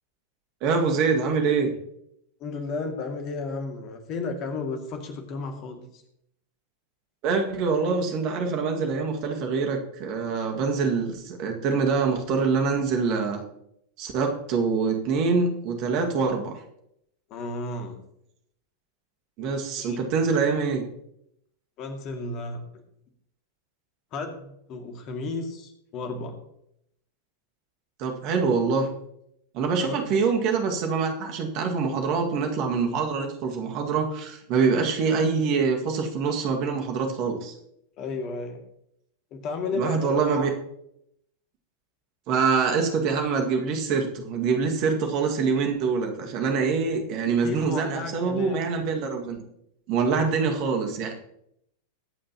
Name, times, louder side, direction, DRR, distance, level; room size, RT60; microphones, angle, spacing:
voice 1, 0.6-1.7 7.2-13.4 14.0-16.5 19.4-20.8 28.0-28.9 29.5-37.5 39.7-40.5 42.3-49.4 49.9-51.1, right 5 dB, 40° right, 3 dB, 2.0 m, -25 dB
voice 2, 2.4-6.0 17.3-18.0 19.8-20.0 21.8-22.6 24.1-26.4 29.8-30.0 38.0-38.6 39.3-40.2 47.2-48.6 50.0-50.5, left 3 dB, 40° left, 5 dB, 2.2 m, -33 dB
23.0 x 8.7 x 3.0 m, 0.76 s
figure-of-eight pair, 90°, 0 cm